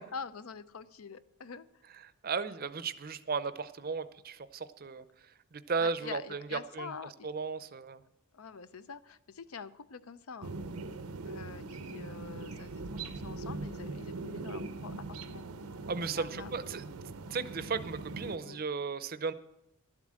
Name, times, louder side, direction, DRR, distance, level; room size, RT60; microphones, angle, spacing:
voice 1, 0.1-1.7 5.8-7.3 8.3-10.6 11.3-15.4 16.0-16.8 18.4-18.6, left 5 dB, 80° left, 14 dB, 0.6 m, -46 dB
voice 2, 2.2-5.0 5.5-6.9 7.2-8.0 15.9-16.8 17.3-19.3, right 5 dB, 45° right, 14 dB, 0.5 m, -35 dB
sound 1, 10.4-18.4, right 3 dB, 85° right, 0.7 m, -41 dB
12.0 x 7.5 x 7.5 m, 0.85 s
head